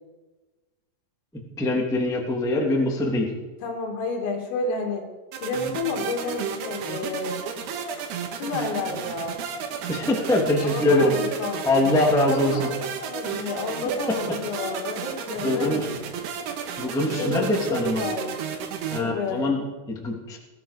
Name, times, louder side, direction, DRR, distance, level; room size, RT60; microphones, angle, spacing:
voice 1, 1.6-3.3 9.9-11.1 11.6-12.6 13.3-13.5 15.4-15.9 16.8-18.0 18.9-20.4, left 1 dB, 5° left, -1 dB, 0.5 m, -23 dB
voice 2, 3.6-5.1 5.4-7.4 8.4-9.4 10.6-11.6 12.2-16.0 17.1-18.4 19.0-19.5, left 3 dB, 80° left, 2 dB, 5.2 m, -30 dB
sound 1, 5.3-19.0, right 7 dB, 65° right, 2.9 m, -33 dB
20.0 x 14.0 x 5.2 m, 1.2 s
omnidirectional pair, 5.9 m